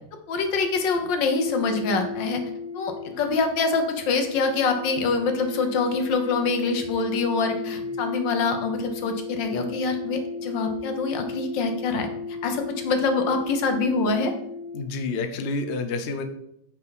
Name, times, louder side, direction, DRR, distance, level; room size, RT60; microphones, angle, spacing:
voice 1, 0.3-2.5 2.7-12.1 12.4-14.3, left 4 dB, 75° left, 6 dB, 1.7 m, -25 dB
sound 1, 1.3-14.8, left 4 dB, 45° right, 1.3 m, -35 dB
voice 2, 14.7-16.2, left 3 dB, 55° left, 7 dB, 0.7 m, -29 dB
8.9 x 4.7 x 4.0 m, 0.75 s
omnidirectional pair, 2.0 m